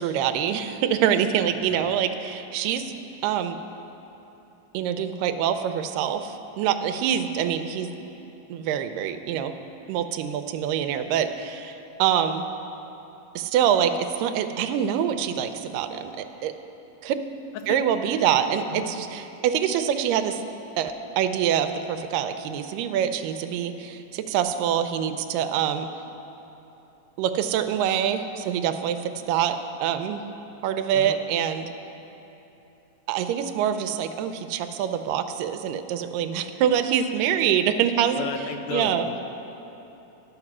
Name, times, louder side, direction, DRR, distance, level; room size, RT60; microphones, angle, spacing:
voice 1, 0.0-2.9 3.2-3.6 4.7-7.9 8.5-9.5 9.9-12.4 13.4-16.5 17.0-17.2 17.7-20.4 20.8-25.9 27.2-30.2 30.6-31.7 33.1-38.3 38.7-39.1, right 9 dB, 90° right, 8 dB, 2.2 m, -25 dB
voice 2, 30.9-31.3 37.9-39.2, left 6 dB, 80° left, 6 dB, 1.8 m, -34 dB
11.0 x 7.0 x 6.0 m, 3.0 s
omnidirectional pair, 3.8 m